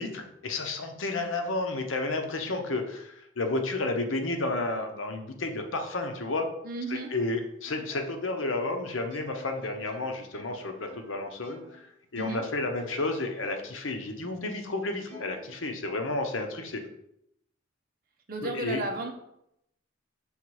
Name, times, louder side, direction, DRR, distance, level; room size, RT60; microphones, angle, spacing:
voice 1, 0.0-6.5 6.9-11.6 12.1-16.8 18.4-18.8, left 2 dB, 90° left, 5 dB, 0.9 m, -31 dB
voice 2, 6.6-7.1 12.2-12.4 18.3-19.1, right 2 dB, 50° right, 3 dB, 0.9 m, -33 dB
Plucked string instrument, 6.9-11.8 12.2-13.9 14.3-14.4 15.1-16.2, left 2 dB, 70° left, 2.2 m, -50 dB
5.7 x 3.5 x 4.7 m, 0.78 s
head